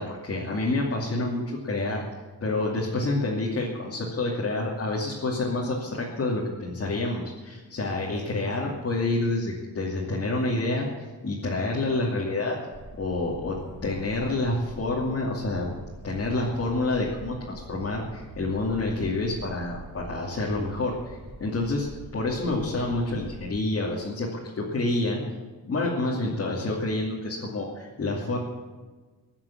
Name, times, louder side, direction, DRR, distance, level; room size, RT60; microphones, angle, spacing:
voice 1, 0.0-2.1 2.4-10.9 11.2-12.6 13.0-15.7 16.0-21.9 22.1-24.3 24.6-25.2 25.7-28.4, left 2 dB, 40° left, -4 dB, 2.7 m, -28 dB
sound 1, 12.7-23.6, right 2 dB, 30° right, 5.6 m, -44 dB
21.5 x 7.4 x 8.6 m, 1.3 s
wide cardioid pair, 150°, 36 cm